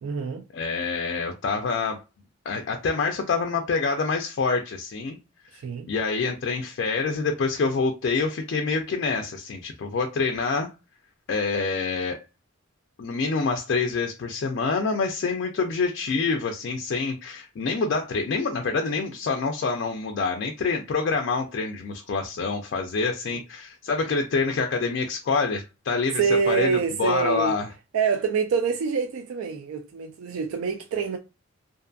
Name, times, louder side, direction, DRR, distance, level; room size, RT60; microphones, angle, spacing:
voice 1, 0.0-0.4 5.6-5.9 26.2-27.5 27.9-31.2, right 5 dB, 85° right, 0.3 m, -26 dB
voice 2, 0.5-2.0 2.5-5.2 5.5-10.7 11.3-12.2 13.0-27.7, left 4 dB, 55° left, 0.3 m, -26 dB
2.5 x 2.3 x 2.5 m
head